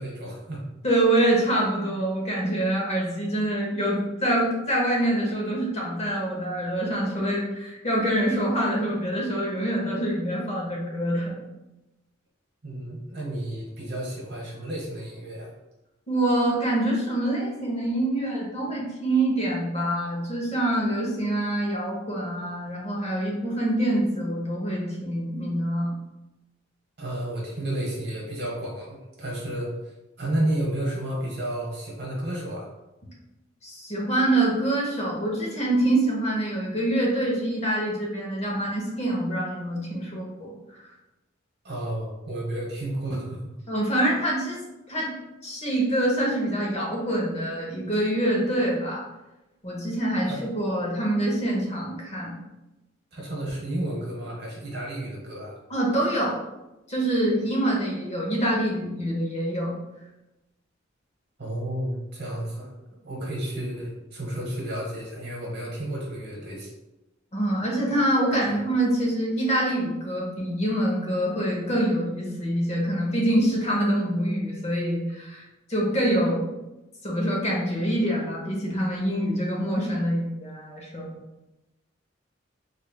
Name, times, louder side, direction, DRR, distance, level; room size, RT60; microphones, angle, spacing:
voice 1, 0.0-0.7 12.6-15.5 27.0-29.7 30.2-32.7 41.6-43.5 50.3-50.4 53.1-55.5 61.4-62.7 63.0-66.7 68.4-68.5, right 1 dB, 55° right, -2 dB, 1.1 m, -31 dB
voice 2, 0.8-11.4 16.1-25.9 33.6-40.8 43.7-44.6 44.9-45.1 45.4-49.0 49.6-52.3 55.7-56.4 56.9-59.7 67.3-76.4 77.0-81.1, right 1 dB, 35° left, -4 dB, 0.8 m, -25 dB
3.2 x 3.1 x 2.3 m, 0.99 s
head